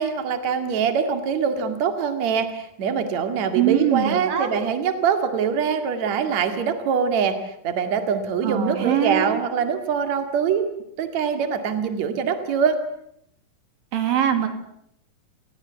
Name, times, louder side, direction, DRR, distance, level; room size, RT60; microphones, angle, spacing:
voice 1, 0.0-7.4 7.6-10.7 11.0-12.8, right 6 dB, 55° right, 7 dB, 3.3 m, -23 dB
voice 2, 3.5-4.5 8.4-9.4 13.9-14.5, right 10 dB, 85° right, 7 dB, 4.4 m, -22 dB
29.5 x 19.5 x 8.3 m, 0.73 s
omnidirectional pair, 4.0 m